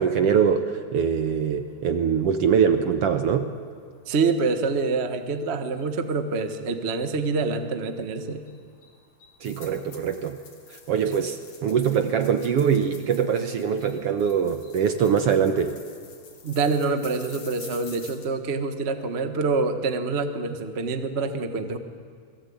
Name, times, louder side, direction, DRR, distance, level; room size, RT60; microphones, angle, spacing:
voice 1, 0.0-3.6 9.4-10.4 10.9-15.8, right 7 dB, 65° right, 8 dB, 1.6 m, -23 dB
sound 1, 1.1-18.3, left 5 dB, 70° left, 4.5 m, -51 dB
voice 2, 4.0-8.4 16.4-21.8, right 4 dB, 40° right, 7 dB, 0.8 m, -26 dB
29.0 x 21.0 x 8.7 m, 2.1 s
omnidirectional pair, 3.6 m